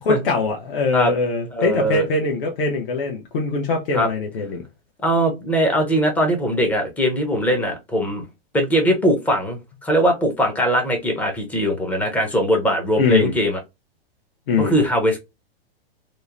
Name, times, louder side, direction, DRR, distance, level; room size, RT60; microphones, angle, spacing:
voice 1, 0.0-4.6 13.0-13.4 14.5-14.8, left 3 dB, 65° left, 0.8 m, -22 dB
voice 2, 1.5-2.1 3.9-4.1 5.0-8.2 8.5-13.6 14.6-15.2, equal, 5° left, 0.4 m, -20 dB
2.8 x 2.0 x 2.4 m
hypercardioid pair, 140°, 31 cm